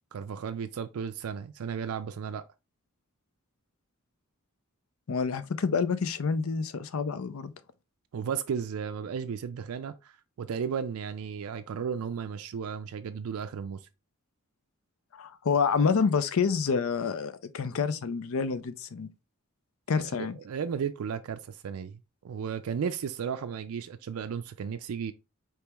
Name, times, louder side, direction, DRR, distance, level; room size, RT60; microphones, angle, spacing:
voice 1, 0.1-2.4 8.1-13.8 20.0-22.0 22.2-25.1, right 7 dB, 70° right, 0.4 m, -34 dB
voice 2, 5.1-7.5 15.1-19.1 19.9-20.4, left 5 dB, 65° left, 0.5 m, -28 dB
4.6 x 3.4 x 2.9 m
head